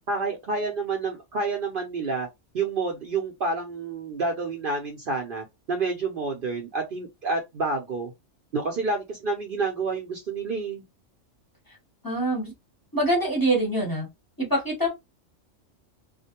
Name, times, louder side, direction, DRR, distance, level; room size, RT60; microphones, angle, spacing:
voice 1, 0.1-2.3 2.5-8.1 8.5-10.8, right 3 dB, 55° right, 0.7 m, -29 dB
voice 2, 12.0-12.5 12.9-14.1 14.4-14.9, right 1 dB, 20° left, 0.8 m, -24 dB
2.4 x 2.1 x 2.8 m
omnidirectional pair, 1.3 m